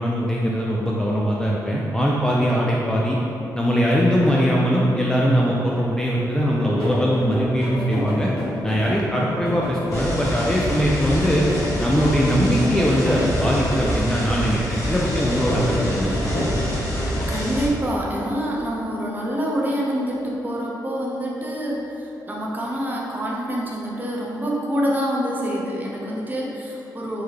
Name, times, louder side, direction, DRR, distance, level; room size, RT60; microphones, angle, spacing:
voice 1, 0.0-3.2 3.5-8.3 8.6-11.4 11.8-16.1, equal, 10° left, -4 dB, 0.3 m, -21 dB
sound 1, 6.8-17.7, left 1 dB, 85° left, 1.2 m, -30 dB
sound 2, 9.9-17.7, equal, 40° left, 1.1 m, -27 dB
voice 2, 17.3-27.2, equal, 25° right, -4 dB, 0.6 m, -26 dB
3.5 x 2.1 x 3.2 m, 2.9 s
cardioid pair, 75°, 8 cm